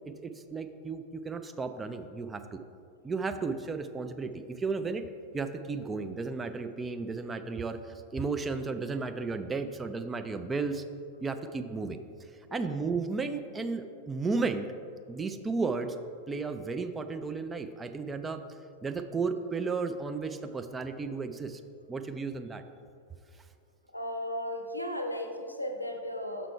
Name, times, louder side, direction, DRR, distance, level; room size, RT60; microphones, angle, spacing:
voice 1, 0.0-2.6 3.0-5.0 5.3-10.8 11.2-12.0 12.5-14.7 15.1-16.0 16.3-18.4 18.8-21.6 21.9-22.6, right 4 dB, 15° right, 8 dB, 0.4 m, -34 dB
voice 2, 23.9-26.5, equal, 85° left, 5 dB, 0.6 m, -35 dB
5.9 x 5.6 x 4.5 m, 2.3 s
figure-of-eight pair, 90°, 0 cm